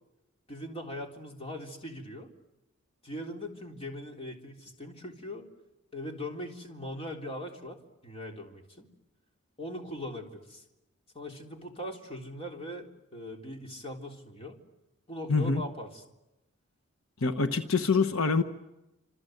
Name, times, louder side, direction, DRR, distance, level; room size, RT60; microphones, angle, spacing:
voice 1, 0.5-2.3 3.0-5.5 5.9-7.8 8.0-8.9 9.6-10.6 11.1-14.6 15.1-16.0, left 1 dB, 30° left, 1 dB, 3.7 m, -40 dB
voice 2, 15.3-15.6 17.2-18.4, left 4 dB, 75° left, 8 dB, 1.2 m, -25 dB
28.0 x 26.5 x 8.0 m, 0.98 s
head